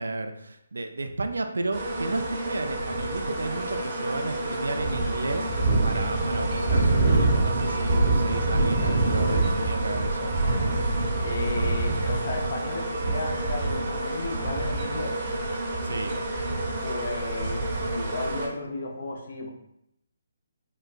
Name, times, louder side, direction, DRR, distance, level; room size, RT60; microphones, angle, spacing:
voice 1, 0.0-10.3 15.8-16.1, right 2 dB, 75° right, 7 dB, 0.3 m, -33 dB
sound 1, 1.7-18.5, right 2 dB, 40° right, 0.8 m, -26 dB
voice 2, 10.8-15.1 16.8-17.6 17.9-19.5, left 3 dB, 55° left, 1 dB, 0.6 m, -34 dB
3.9 x 2.1 x 2.4 m, 0.78 s
figure-of-eight pair, 145°, 0 cm